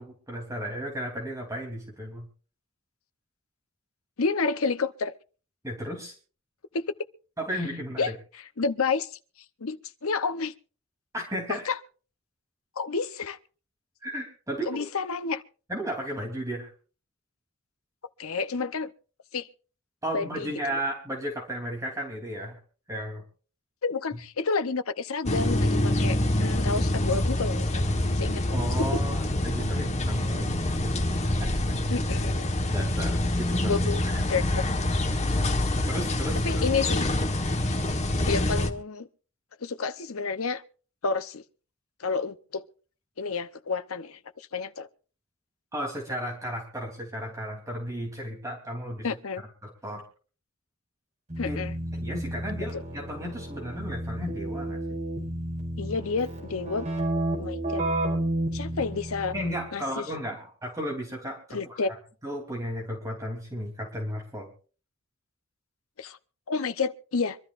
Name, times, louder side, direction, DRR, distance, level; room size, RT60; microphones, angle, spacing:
voice 1, 0.0-2.3 5.6-6.1 7.4-8.2 11.1-11.6 14.0-14.8 15.7-16.7 20.0-22.6 22.9-23.2 28.5-31.6 32.7-33.7 34.0-34.4 35.9-36.6 45.7-49.1 49.6-50.0 51.4-51.6 52.0-55.0 59.3-61.8 62.2-64.5, equal, 15° right, 3.2 m, -34 dB
voice 2, 4.2-5.1 6.7-6.9 8.0-8.1 8.6-9.2 9.6-10.5 11.5-11.8 12.8-13.4 14.7-15.4 18.2-18.9 19.3-19.5 20.1-20.8 23.8-27.9 28.1-28.4 28.8-29.0 31.9-32.5 33.7-34.6 36.4-37.1 38.3-39.1 39.6-40.6 41.0-41.4 42.0-42.6 43.2-44.9 49.0-49.4 51.4-51.7 52.7-52.8 55.8-56.9 57.4-57.8 58.5-59.3 59.7-60.1 61.5-61.9 66.0-66.2 66.5-67.4, left 4 dB, 70° left, 0.8 m, -30 dB
sound 1, 25.3-38.7, left 1 dB, 30° left, 1.4 m, -26 dB
Keyboard (musical), 51.3-59.7, right 1 dB, 35° right, 4.5 m, -32 dB
25.5 x 13.0 x 2.5 m
head